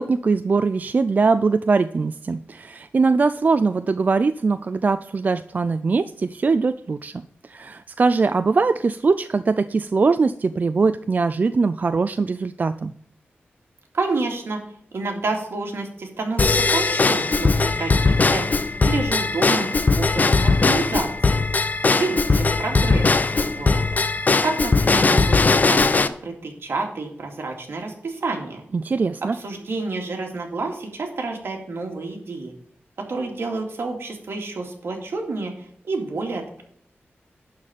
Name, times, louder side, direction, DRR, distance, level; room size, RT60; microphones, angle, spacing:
voice 1, 0.0-12.9 28.7-29.4, right 4 dB, 40° right, 12 dB, 0.3 m, -21 dB
voice 2, 13.9-14.6 14.9-18.5 18.8-21.5 21.8-24.0 24.4-28.6 29.2-32.5 33.0-36.6, right 3 dB, 70° right, 1 dB, 2.2 m, -29 dB
Drum kit / Drum / Bell, 16.4-26.1, left 3 dB, 40° left, 0.6 m, -19 dB
11.5 x 4.2 x 7.5 m, 0.66 s
wide cardioid pair, 120°, 4 cm